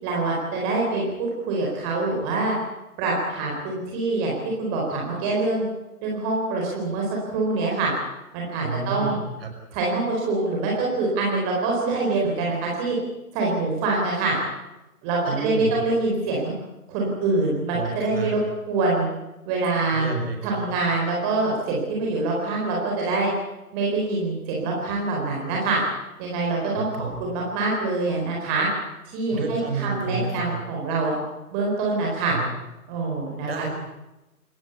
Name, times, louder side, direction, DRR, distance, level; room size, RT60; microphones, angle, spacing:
voice 1, 0.0-2.5 3.0-5.6 6.0-7.9 8.3-9.2 9.7-13.0 13.3-14.4 15.0-16.5 16.9-18.4 18.7-19.1 19.5-20.0 20.4-23.3 23.7-25.8 26.2-28.7 29.1-31.1 31.5-32.4 32.9-33.7, right 3 dB, 20° right, -2 dB, 4.3 m, -25 dB
voice 2, 8.6-9.5 15.2-15.8 17.7-18.5 19.9-20.6 26.7-27.2 29.3-30.6 32.3-32.5 33.5-33.7, right 4 dB, 40° right, 4 dB, 5.6 m, -30 dB
27.5 x 16.0 x 8.2 m, 0.97 s
figure-of-eight pair, 140°, 44 cm